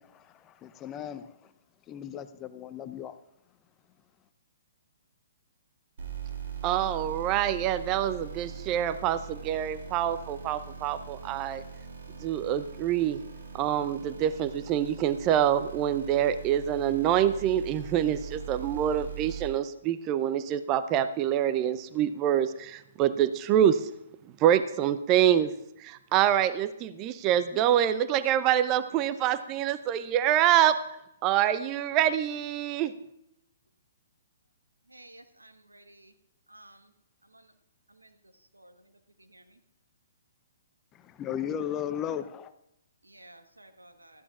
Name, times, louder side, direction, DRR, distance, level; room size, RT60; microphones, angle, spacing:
voice 1, 0.0-1.5 1.9-3.2 40.9-42.5, left 9 dB, 20° left, 11 dB, 0.7 m, -36 dB
sound 1, 6.0-19.5, right 7 dB, 60° right, 2.9 m, -41 dB
voice 2, 6.6-11.6 12.2-13.2 13.5-23.9 24.4-25.5 25.8-30.8 31.2-32.9, right 10 dB, 30° right, 13 dB, 0.6 m, -26 dB
voice 3, 34.9-36.0 36.5-36.7 43.1-44.1, right 1 dB, 90° right, 7 dB, 1.3 m, -52 dB
17.0 x 14.0 x 2.5 m, 0.80 s
figure-of-eight pair, 125°, 0 cm